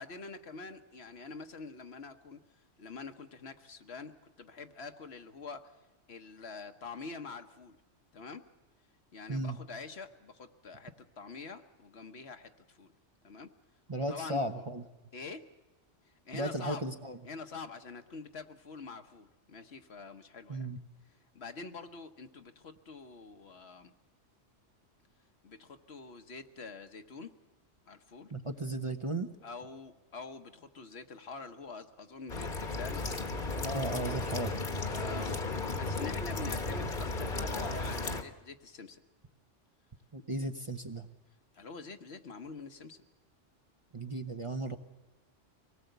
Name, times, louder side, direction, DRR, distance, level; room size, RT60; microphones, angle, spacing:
voice 1, 0.0-5.8 6.1-7.8 8.1-8.4 9.1-12.9 13.2-13.5 14.1-14.6 15.1-15.5 16.1-16.8 17.2-20.7 21.3-23.9 25.4-27.3 27.9-28.3 29.4-33.3 34.9-39.0 41.5-43.0, left 4 dB, 60° left, 7 dB, 1.4 m, -46 dB
voice 2, 13.9-14.8 16.3-17.2 20.5-20.8 28.3-29.3 33.6-34.6 40.1-41.1 43.9-44.8, right 2 dB, 30° right, 6 dB, 0.9 m, -35 dB
sound 1, 32.3-38.2, left 3 dB, 45° left, 1.4 m, -35 dB
24.5 x 18.5 x 8.0 m, 1.1 s
omnidirectional pair, 1.2 m